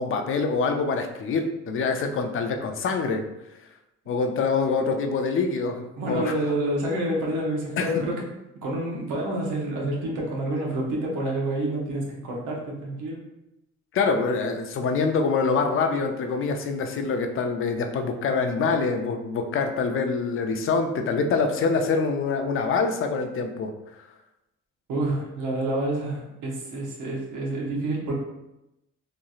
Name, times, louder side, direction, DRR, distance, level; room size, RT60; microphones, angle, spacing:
voice 1, 0.0-3.2 4.1-6.3 7.8-8.0 13.9-23.7, left 4 dB, 45° left, 5 dB, 0.4 m, -25 dB
voice 2, 6.0-8.2 8.6-13.2 24.9-28.1, right 1 dB, 90° right, -2 dB, 0.8 m, -28 dB
3.0 x 2.6 x 2.3 m, 0.91 s
cardioid pair, 90°, 30 cm